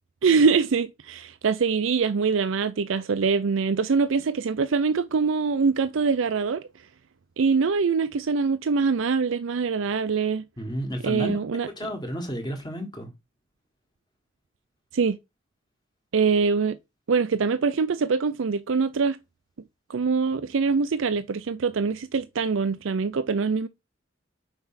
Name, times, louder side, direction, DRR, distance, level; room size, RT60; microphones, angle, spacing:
voice 1, 0.2-6.7 7.4-10.4 11.0-11.7 14.9-15.2 16.1-16.8 17.1-19.2 19.9-23.7, right 5 dB, 80° right, 0.5 m, -24 dB
voice 2, 10.6-11.4 11.6-13.1, equal, 20° left, 1.6 m, -32 dB
5.7 x 4.4 x 5.7 m
head